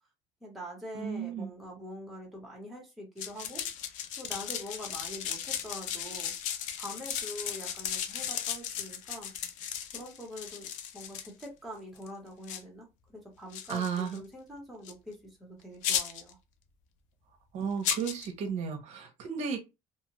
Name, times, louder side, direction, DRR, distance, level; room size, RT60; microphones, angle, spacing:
voice 1, 0.4-3.6 4.2-6.3 6.8-9.3 9.9-16.4, equal, ahead, 1.1 m, -44 dB
voice 2, 0.9-1.5 13.7-14.2 17.5-19.6, right 6 dB, 60° right, 0.7 m, -33 dB
sound 1, 3.2-11.5 12.0-12.1 12.4-12.6 13.5-14.2 14.9-15.0 15.8-16.3 17.8-18.3, left 9 dB, 75° left, 0.5 m, -35 dB
2.8 x 2.3 x 2.9 m
cardioid pair, 150°, 13 cm